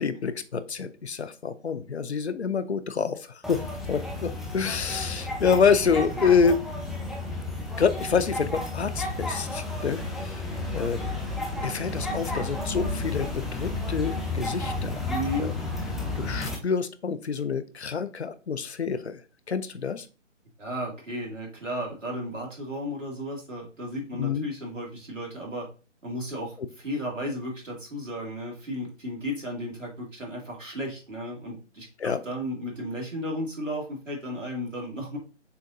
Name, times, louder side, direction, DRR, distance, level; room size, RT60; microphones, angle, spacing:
voice 1, 0.0-6.6 7.8-10.4 10.7-11.0 11.6-15.0 15.4-15.5 16.2-19.2 19.5-20.1 24.1-24.5 32.0-32.2, left 6 dB, 60° left, 13 dB, 0.6 m, -27 dB
sound 1, 3.4-16.6, left 2 dB, ahead, 0.3 m, -32 dB
voice 2, 15.1-15.5 20.6-25.7 26.0-35.2, equal, 90° right, -1 dB, 2.3 m, -34 dB
6.8 x 2.8 x 2.6 m, 0.35 s
figure-of-eight pair, 150°, 37 cm